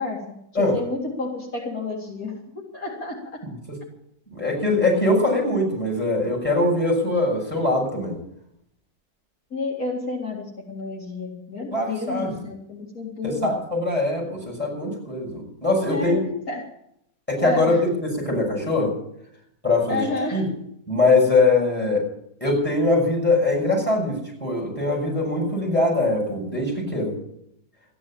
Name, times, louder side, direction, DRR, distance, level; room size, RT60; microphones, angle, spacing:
voice 1, 0.0-3.4 9.5-13.6 15.9-16.2 16.5-16.7 17.4-17.8 19.9-20.5, left 3 dB, 70° left, 0 dB, 2.8 m, -30 dB
voice 2, 3.4-3.8 4.3-8.2 11.7-12.3 13.2-16.2 17.3-18.9 19.6-20.0 20.3-20.5 20.9-22.0 22.4-27.1, left 2 dB, 5° left, -1 dB, 6.3 m, -22 dB
13.5 x 10.0 x 8.7 m, 0.74 s
omnidirectional pair, 1.6 m